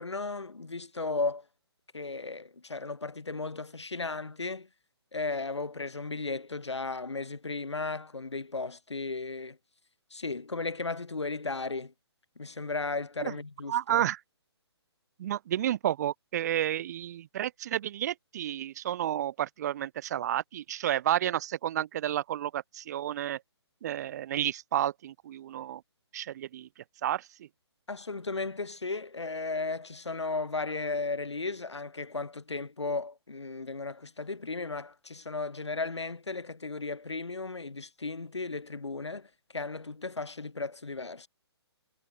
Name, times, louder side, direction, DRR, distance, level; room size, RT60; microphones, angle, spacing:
voice 1, 0.0-1.4 1.9-4.7 5.1-9.6 10.1-11.9 12.4-14.1 27.9-41.3, left 3 dB, 80° left, 1.8 m, -35 dB
voice 2, 13.7-14.2 15.2-23.4 23.8-25.8 26.1-26.7 27.0-27.2, right 11 dB, 40° right, 1.1 m, -31 dB
figure-of-eight pair, 135°, 14 cm